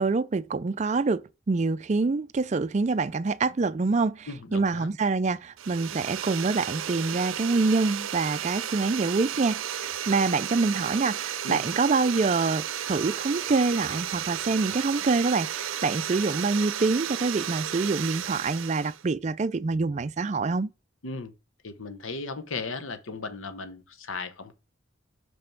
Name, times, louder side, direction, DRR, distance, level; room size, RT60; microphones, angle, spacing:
voice 1, 0.0-20.7, right 3 dB, 35° right, 0.4 m, -26 dB
voice 2, 4.3-4.9 11.4-11.6 21.0-21.3 21.6-24.6, left 4 dB, 80° left, 0.9 m, -36 dB
sound 1, 5.6-19.0, right 10 dB, 80° right, 0.6 m, -33 dB
6.0 x 5.4 x 5.8 m
head